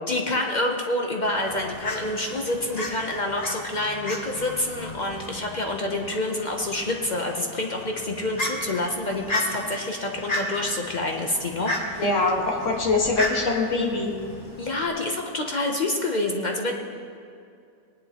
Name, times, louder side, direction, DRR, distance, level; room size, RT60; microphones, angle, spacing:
voice 1, 0.1-12.0 14.6-16.7, left 2 dB, 60° left, 2 dB, 0.4 m, -27 dB
Fowl, 1.2-14.9, left 1 dB, 25° left, 1.2 m, -34 dB
voice 2, 12.0-14.1, left 3 dB, 45° left, -2 dB, 1.8 m, -23 dB
19.5 x 10.5 x 2.9 m, 2.4 s
omnidirectional pair, 1.8 m